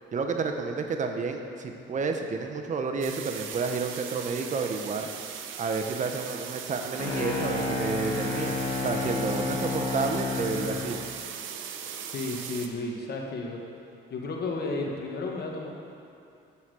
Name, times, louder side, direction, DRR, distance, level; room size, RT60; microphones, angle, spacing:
voice 1, 0.1-5.1 5.6-11.0, right 4 dB, 40° right, 4 dB, 0.7 m, -30 dB
sound 1, 3.0-12.7, right 8 dB, 80° right, 0.6 m, -39 dB
sound 2, 7.0-10.9, left 3 dB, 85° left, 1.5 m, -30 dB
voice 2, 12.1-13.6 14.1-15.7, left 2 dB, 55° left, 0 dB, 1.3 m, -32 dB
8.5 x 5.9 x 4.8 m, 2.7 s
cardioid pair, 90°, 20 cm